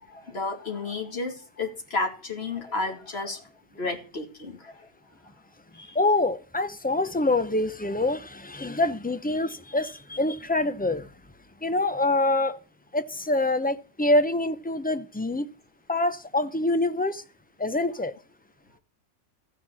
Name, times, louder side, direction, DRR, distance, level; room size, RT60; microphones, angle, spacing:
voice 1, 0.0-3.4 3.8-4.9 5.7-6.0, left 3 dB, 50° left, 2.6 m, -32 dB
voice 2, 5.9-11.1 11.6-12.6 12.9-15.5 15.9-17.2 17.6-18.1, left 2 dB, 10° left, 0.4 m, -25 dB
13.5 x 9.3 x 6.2 m
omnidirectional pair, 1.4 m